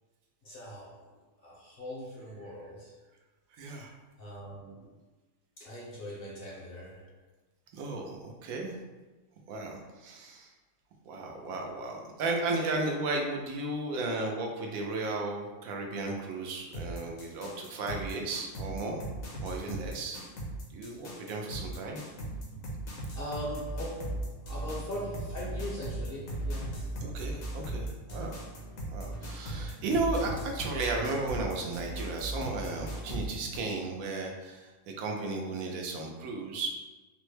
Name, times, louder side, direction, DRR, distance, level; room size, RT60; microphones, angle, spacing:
voice 1, 0.4-3.0 4.2-4.9 5.6-7.2 23.2-26.9, equal, 55° left, -4 dB, 0.7 m, -41 dB
voice 2, 3.5-3.9 7.7-8.8 9.5-10.5 11.1-19.0 19.4-20.2 20.7-22.0 27.0-28.4 28.9-36.7, right 2 dB, 80° right, 1 dB, 1.0 m, -34 dB
sound 1, 16.7-33.6, right 1 dB, 75° left, 1.1 m, -38 dB
3.6 x 2.1 x 3.1 m, 1.2 s
omnidirectional pair, 1.5 m